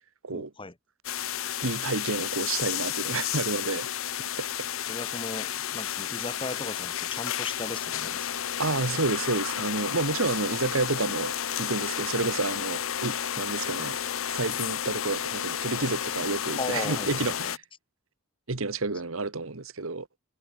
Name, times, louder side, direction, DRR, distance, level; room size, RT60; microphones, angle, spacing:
voice 1, 0.3-0.7 4.9-8.3 16.6-17.5, left 3 dB, 25° left, 1.9 m, -37 dB
sound 1, 1.0-17.6, left 10 dB, 80° left, 1.0 m, -32 dB
voice 2, 1.6-3.9 4.4-4.7 8.6-14.0 14.3-17.6 18.5-20.1, right 3 dB, 80° right, 1.6 m, -30 dB
head